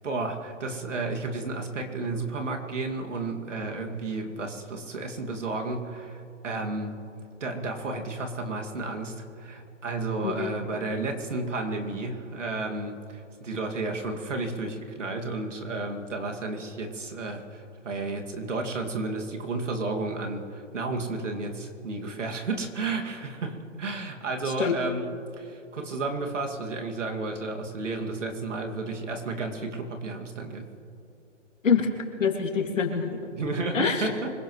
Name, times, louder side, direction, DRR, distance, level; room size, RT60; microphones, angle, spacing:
voice 1, 0.0-6.9 7.4-25.1 25.4-30.7 33.3-34.3, right 3 dB, 75° right, 2 dB, 2.4 m, -32 dB
voice 2, 32.2-33.3 33.7-34.1, left 6 dB, 85° left, 2 dB, 2.8 m, -25 dB
25.0 x 16.5 x 3.2 m, 2.7 s
hypercardioid pair, 170°, 37 cm